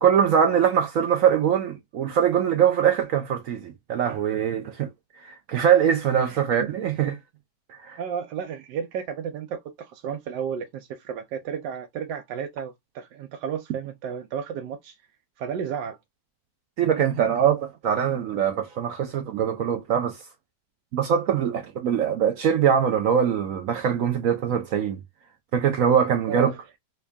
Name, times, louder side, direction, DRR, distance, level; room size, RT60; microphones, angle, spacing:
voice 1, 0.0-4.9 5.2-7.2 7.7-8.0 16.8-20.2 20.9-25.0 25.5-26.5, right 8 dB, 70° right, 0.8 m, -22 dB
voice 2, 8.0-15.0 15.4-16.0 26.3-26.6, right 7 dB, 85° right, 1.2 m, -33 dB
3.5 x 2.3 x 3.3 m
omnidirectional pair, 1.8 m